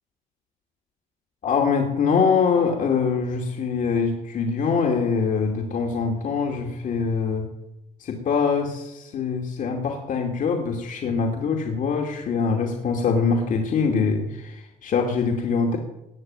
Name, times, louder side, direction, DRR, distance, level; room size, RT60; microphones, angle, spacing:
voice 1, 1.4-7.5 8.0-15.8, left 5 dB, 50° left, 2 dB, 2.5 m, -23 dB
19.0 x 7.2 x 9.0 m, 0.90 s
cardioid pair, 110°, 17 cm